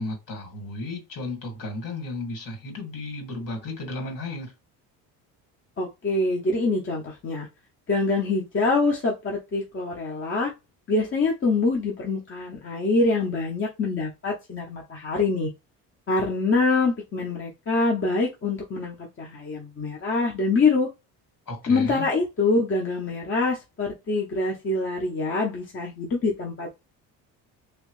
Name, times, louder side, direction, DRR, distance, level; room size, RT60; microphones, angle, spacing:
voice 1, 0.0-4.5 21.5-22.1, left 2 dB, 50° left, 2.2 m, -34 dB
voice 2, 5.8-7.5 7.9-10.5 10.9-15.5 16.1-20.9 21.7-26.7, left 3 dB, 30° left, 1.0 m, -25 dB
3.2 x 3.0 x 3.2 m
supercardioid pair, 95°, 41 cm